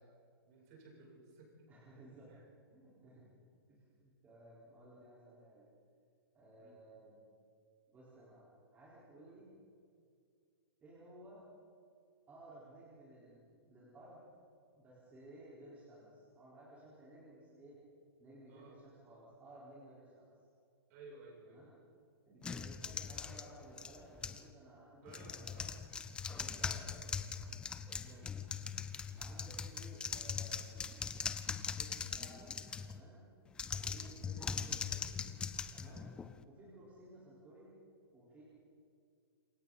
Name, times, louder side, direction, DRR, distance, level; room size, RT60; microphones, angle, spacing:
voice 1, 0.4-1.7 1.9-2.4 3.1-3.2 6.6-6.8 9.2-9.3 18.5-18.8 20.9-21.7 25.0-25.7 26.3-27.2 28.1-28.3 33.8-34.0 35.8-36.0, right 3 dB, 40° right, -2 dB, 7.8 m, -58 dB
voice 2, 1.7-2.3 2.7-3.3 3.7-5.7 6.3-7.2 7.9-9.5 10.8-11.4 12.3-13.4 13.7-14.2 14.7-17.8 18.2-20.3 21.5-21.7 22.2-25.5 26.3-26.9 28.0-28.3 29.2-30.7 31.7-32.5 32.9-33.2 33.8-35.1 35.7-36.1 36.4-37.8 38.1-38.4, right 1 dB, 15° right, -8 dB, 4.6 m, -57 dB
sound 1, 22.4-24.5 25.1-33.0 33.5-36.4, left 6 dB, 5° left, 0.5 m, -41 dB
27.5 x 23.5 x 4.2 m, 2.2 s
hypercardioid pair, 165°, 13 cm